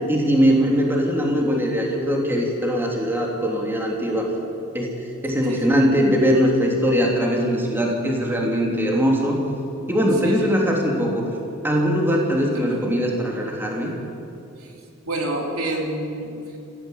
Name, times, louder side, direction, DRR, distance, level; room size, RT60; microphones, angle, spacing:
voice 1, 0.1-4.3 4.7-4.9 5.2-9.4 9.9-11.3 11.6-13.9, equal, 10° right, -1 dB, 3.3 m, -21 dB
voice 2, 5.5-5.9 10.2-10.8 12.4-12.8 14.6-14.7 15.0-16.3, right 1 dB, 80° right, 0 dB, 4.3 m, -29 dB
27.0 x 16.0 x 8.3 m, 2.7 s
head